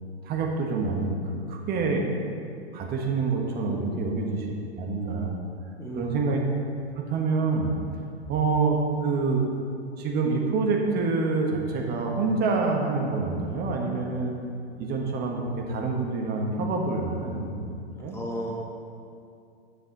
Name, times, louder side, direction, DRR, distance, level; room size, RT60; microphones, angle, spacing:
voice 1, 0.2-1.2 1.5-2.1 2.7-4.5 4.7-5.4 6.0-6.4 7.0-7.7 8.3-9.5 10.0-14.4 14.8-17.7 18.0-18.2, right 4 dB, 30° right, 1 dB, 1.4 m, -26 dB
voice 2, 3.6-4.0 5.8-6.1 18.0-18.5, right 1 dB, 5° left, -3 dB, 1.5 m, -35 dB
9.9 x 6.7 x 4.0 m, 2.4 s
hypercardioid pair, 110°, 34 cm